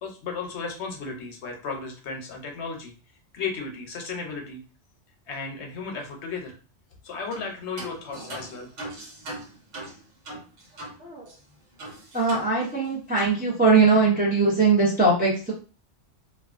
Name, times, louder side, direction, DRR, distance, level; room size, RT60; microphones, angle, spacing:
voice 1, 0.0-2.9 3.3-4.6 5.3-6.6 7.0-8.7, left 4 dB, 70° left, 2 dB, 0.9 m, -34 dB
sound 1, 7.3-7.5 7.8-11.0 11.3-11.4 11.8-12.9 13.2-13.4, right 1 dB, 85° right, 1.2 m, -40 dB
voice 2, 11.0-11.3 12.1-15.5, right 4 dB, 15° right, -4 dB, 0.4 m, -21 dB
2.4 x 2.2 x 2.4 m, 0.36 s
omnidirectional pair, 1.2 m